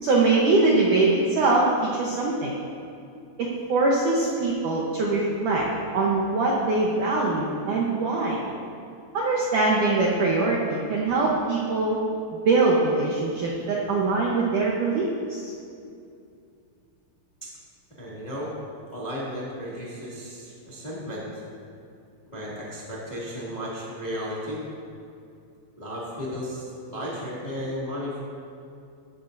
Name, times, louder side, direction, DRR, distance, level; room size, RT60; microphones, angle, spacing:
voice 1, 0.0-2.5 3.4-5.6 5.9-8.4 9.1-12.0 12.5-15.5, right 3 dB, 70° right, -3 dB, 1.9 m, -23 dB
voice 2, 18.0-18.5 18.9-21.3 22.3-24.6 25.8-28.2, equal, 15° left, -7 dB, 1.4 m, -34 dB
15.5 x 12.5 x 2.7 m, 2.5 s
omnidirectional pair, 5.0 m